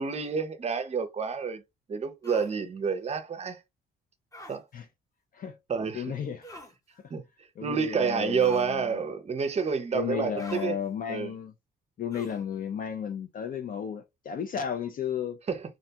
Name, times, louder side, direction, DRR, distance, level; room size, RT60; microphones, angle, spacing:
voice 1, 0.0-1.6 1.9-3.6 4.5-4.6 5.7-6.0 7.1-7.2 7.6-10.7 11.1-11.3 15.5-15.6, right 6 dB, 35° right, 0.5 m, -29 dB
sound 1, 2.2-2.5 4.3-4.6 6.4-6.7 8.4-8.7 10.4-10.7 12.1-12.4, left 1 dB, 15° left, 0.8 m, -45 dB
voice 2, 5.9-6.5 6.9-7.0 7.6-9.0 9.9-11.5 12.0-15.4, left 8 dB, 45° left, 0.4 m, -33 dB
2.5 x 2.2 x 2.7 m
cardioid pair, 90°, 20 cm